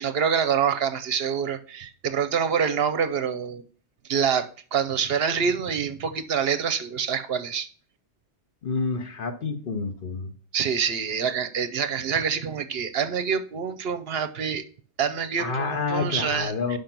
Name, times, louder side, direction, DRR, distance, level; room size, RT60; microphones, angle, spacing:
voice 1, 0.0-3.6 4.1-7.7 10.5-14.6 15.0-16.8, right 7 dB, 65° right, 11 dB, 0.8 m, -26 dB
voice 2, 8.6-10.3 15.4-16.8, left 4 dB, 50° left, 7 dB, 1.0 m, -28 dB
5.3 x 5.2 x 5.8 m, 0.42 s
omnidirectional pair, 1.2 m